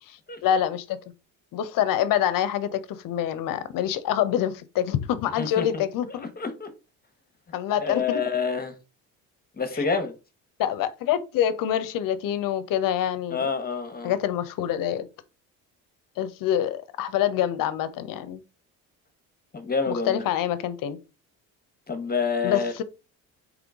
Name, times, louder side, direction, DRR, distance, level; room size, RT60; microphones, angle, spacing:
voice 1, 0.4-1.0 1.5-6.3 7.5-8.2 9.8-9.9 10.6-13.5 14.0-15.1 16.2-18.4 19.9-21.0 22.4-22.8, left 10 dB, 60° left, 0.7 m, -26 dB
voice 2, 5.4-6.7 7.8-8.7 9.6-10.1 13.3-14.1 19.5-20.2 21.9-22.7, left 5 dB, 25° left, 1.1 m, -28 dB
3.7 x 3.2 x 3.5 m
supercardioid pair, 80°, 38 cm